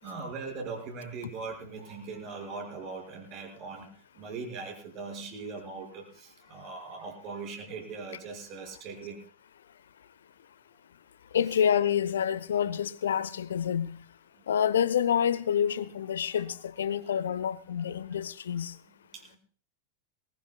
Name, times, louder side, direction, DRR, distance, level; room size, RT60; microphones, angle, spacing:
voice 1, 0.0-3.9 4.2-9.2 11.5-11.6 15.6-15.7 16.3-16.6 17.8-17.9 19.1-19.4, right 4 dB, 40° right, 5.6 m, -40 dB
voice 2, 11.3-14.0 14.5-18.7, left 8 dB, 65° left, 0.7 m, -28 dB
21.0 x 19.5 x 2.3 m
figure-of-eight pair, 90°, 0 cm